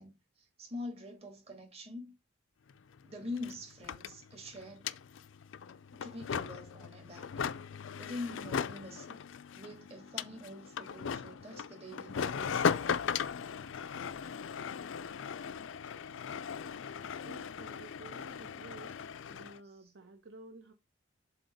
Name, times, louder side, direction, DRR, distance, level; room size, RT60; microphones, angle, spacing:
voice 1, 0.0-2.1 3.0-4.9 6.0-7.6 8.0-9.2 9.5-12.6, left 2 dB, 30° right, 1.9 m, -45 dB
sound 1, 2.7-2.8 3.0-19.6, left 6 dB, 75° left, 0.4 m, -38 dB
voice 2, 17.2-19.0 19.3-20.7, right 3 dB, 65° right, 1.0 m, -52 dB
7.7 x 3.0 x 5.2 m
head